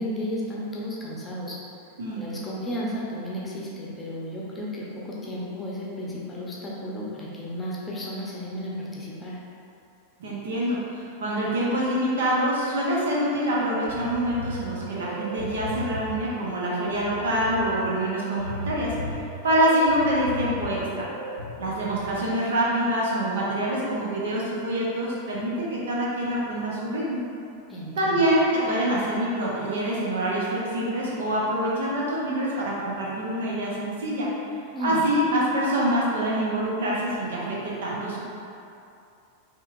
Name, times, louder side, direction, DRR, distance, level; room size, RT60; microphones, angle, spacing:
voice 1, 0.0-1.6 2.2-9.4 27.7-28.2 34.7-35.0, equal, 15° left, -5 dB, 0.8 m, -33 dB
voice 2, 10.2-21.1 21.6-27.2 28.0-34.3 34.8-38.2, right 1 dB, 60° right, -5 dB, 0.9 m, -25 dB
sound 1, 13.5-22.2, left 2 dB, 70° left, 0.6 m, -37 dB
5.2 x 3.0 x 2.6 m, 2.6 s
figure-of-eight pair, 90°, 0 cm